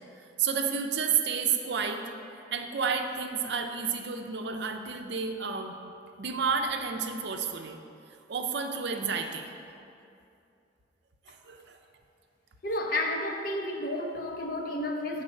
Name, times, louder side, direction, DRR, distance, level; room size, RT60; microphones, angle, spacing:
voice 1, 0.4-2.1 2.5-5.8 6.2-7.8 8.3-9.5 11.3-11.8, right 6 dB, 60° right, 4 dB, 0.6 m, -30 dB
voice 2, 12.6-15.2, left 1 dB, 50° left, 2 dB, 0.8 m, -31 dB
8.9 x 4.0 x 6.3 m, 2.6 s
head